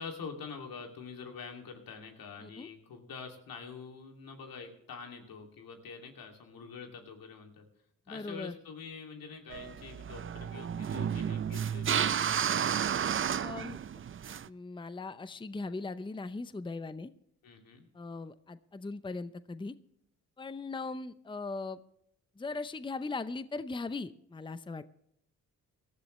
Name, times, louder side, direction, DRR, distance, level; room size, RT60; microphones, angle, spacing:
voice 1, 0.0-7.6 8.1-12.1 17.4-17.9, left 5 dB, 85° left, 3 dB, 2.7 m, -45 dB
voice 2, 8.1-8.5 13.4-13.8 14.4-17.1 17.9-19.7 20.4-21.8 22.4-24.8, left 3 dB, 15° left, 14 dB, 0.6 m, -39 dB
sound 1, 9.5-14.5, right 8 dB, 40° right, 0.5 m, -32 dB
18.5 x 13.5 x 3.2 m, 0.73 s
cardioid pair, 70°, 34 cm